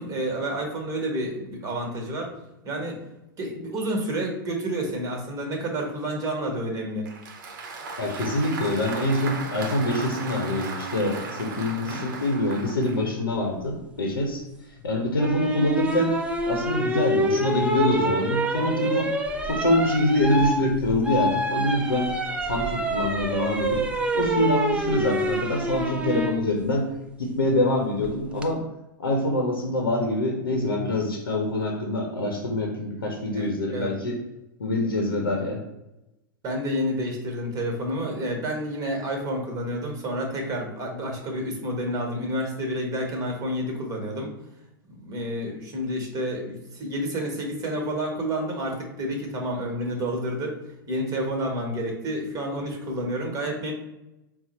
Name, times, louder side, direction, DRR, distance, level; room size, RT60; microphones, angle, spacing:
voice 1, 0.0-2.3 2.6-3.0 3.4-7.1 11.8-12.0 33.3-33.9 36.4-44.3 44.9-50.6 50.9-53.7, equal, 30° right, 2 dB, 1.2 m, -29 dB
Applause, 7.1-13.1, right 4 dB, 55° right, 0.7 m, -36 dB
voice 2, 8.0-14.4 14.8-19.1 19.5-22.1 22.5-23.9 24.1-26.9 27.2-28.6 29.0-34.2 34.6-35.6, left 1 dB, 80° left, 0 dB, 0.7 m, -25 dB
sound 1, 15.2-26.4 28.0-28.5, right 1 dB, 10° right, 0.5 m, -27 dB
4.2 x 2.0 x 4.2 m, 0.94 s
figure-of-eight pair, 100°, 12 cm